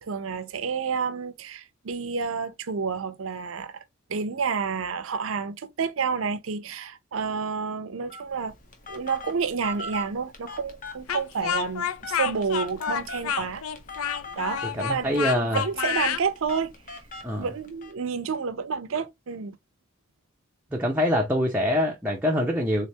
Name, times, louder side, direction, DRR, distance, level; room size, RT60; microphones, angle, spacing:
voice 1, 0.0-3.8 4.1-8.5 8.9-13.6 14.4-17.0 17.4-19.6, right 5 dB, 70° right, 0.5 m, -30 dB
Telephone, 8.1-17.9, left 1 dB, 40° left, 0.9 m, -41 dB
Speech, 11.1-16.2, left 8 dB, 80° left, 0.4 m, -29 dB
voice 2, 14.7-15.6 17.2-17.5 20.7-22.9, equal, 10° right, 0.5 m, -24 dB
3.6 x 3.2 x 2.8 m
head